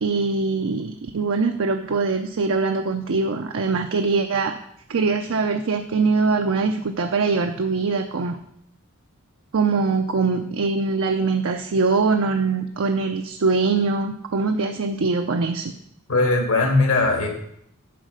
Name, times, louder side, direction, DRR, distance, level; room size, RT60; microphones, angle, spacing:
voice 1, 0.0-4.6 4.9-8.4 9.5-15.7, right 4 dB, 65° right, 5 dB, 0.5 m, -22 dB
voice 2, 16.1-17.3, left 3 dB, 70° left, 2 dB, 1.8 m, -19 dB
10.0 x 4.1 x 6.5 m, 0.72 s
head